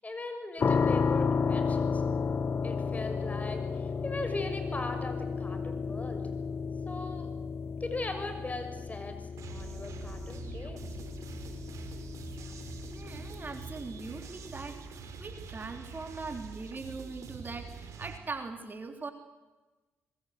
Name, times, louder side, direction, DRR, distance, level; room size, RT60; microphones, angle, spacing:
voice 1, 0.0-2.0 2.6-6.2 6.9-7.3 7.8-10.9, left 2 dB, 25° left, 7 dB, 6.4 m, -39 dB
sound 1, 0.6-15.5, left 5 dB, 45° left, 1.2 m, -33 dB
sound 2, 9.4-18.2, right 6 dB, 65° right, 4.3 m, -45 dB
voice 2, 12.9-19.1, right 4 dB, 35° right, 6 dB, 3.4 m, -41 dB
25.5 x 21.5 x 8.1 m, 1.2 s
supercardioid pair, 55°, 6 cm